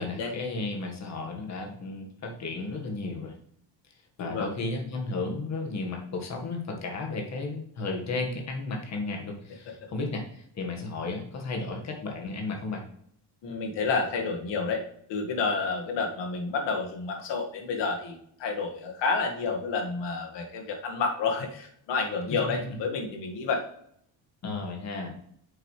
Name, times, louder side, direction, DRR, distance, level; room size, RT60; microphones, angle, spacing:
voice 1, 0.0-3.3 4.2-12.8 22.3-22.4 24.4-25.1, left 3 dB, 35° left, 2 dB, 1.6 m, -33 dB
voice 2, 13.4-14.8 15.1-23.6, left 4 dB, 70° left, 2 dB, 1.9 m, -30 dB
8.1 x 6.9 x 3.2 m, 0.68 s
cardioid pair, 175°, 44 cm